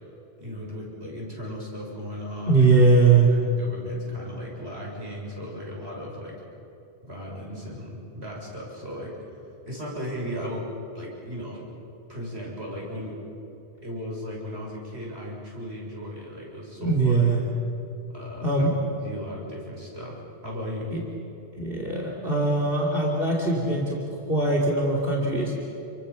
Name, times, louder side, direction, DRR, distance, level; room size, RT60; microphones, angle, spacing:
voice 1, 0.4-2.9 3.3-6.4 7.0-9.2 9.7-10.7 10.9-11.7 12.1-13.2 13.8-17.5 18.1-18.7 19.0-20.9, equal, 85° right, -3 dB, 7.1 m, -36 dB
voice 2, 2.5-3.3 16.8-17.4 18.4-18.7 20.9-21.0 21.6-24.0 24.3-25.5, right 3 dB, 60° right, -3 dB, 3.3 m, -21 dB
29.0 x 24.0 x 7.1 m, 2.8 s
omnidirectional pair, 1.1 m